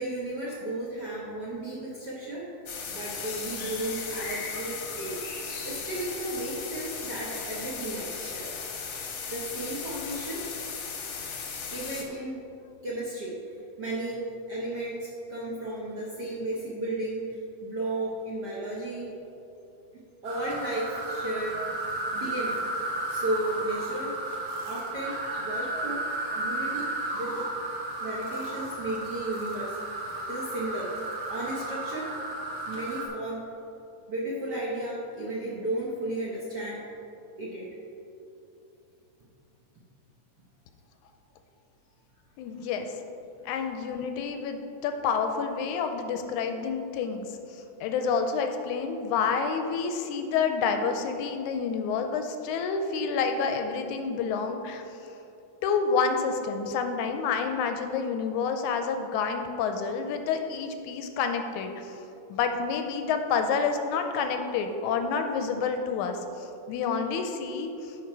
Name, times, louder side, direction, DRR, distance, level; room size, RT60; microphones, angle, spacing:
voice 1, 0.0-2.4 2.9-5.3 5.6-8.5 9.3-10.4 11.7-12.4 12.8-13.4 13.8-19.1 20.2-21.7 22.1-22.6 23.1-24.1 24.6-26.0 26.3-27.5 28.0-30.9 31.3-32.1 32.7-33.4 34.1-36.8 37.4-37.7 43.4-43.5, right 1 dB, 75° right, -6 dB, 0.9 m, -34 dB
sound 1, 2.7-12.0, left 5 dB, 65° left, 1.3 m, -36 dB
sound 2, 20.2-33.1, right 2 dB, 50° right, 1.9 m, -33 dB
voice 2, 42.4-42.9 43.5-54.8 55.6-61.9 62.3-68.0, left 5 dB, 80° left, 6 dB, 1.9 m, -29 dB
11.5 x 5.5 x 4.7 m, 2.9 s
omnidirectional pair, 3.7 m